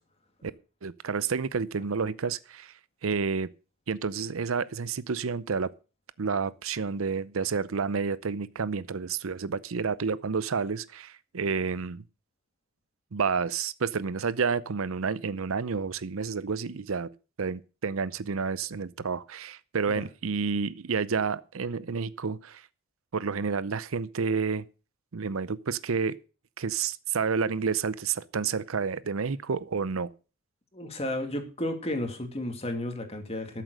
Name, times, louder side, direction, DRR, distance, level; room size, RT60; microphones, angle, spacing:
voice 1, 0.8-2.7 3.0-3.5 3.9-5.7 6.2-12.0 13.1-17.1 17.4-22.7 23.1-24.6 25.1-26.1 26.6-30.1, right 5 dB, 75° right, 0.6 m, -30 dB
voice 2, 30.7-33.6, left 1 dB, 30° left, 2.5 m, -32 dB
13.0 x 7.6 x 6.5 m
head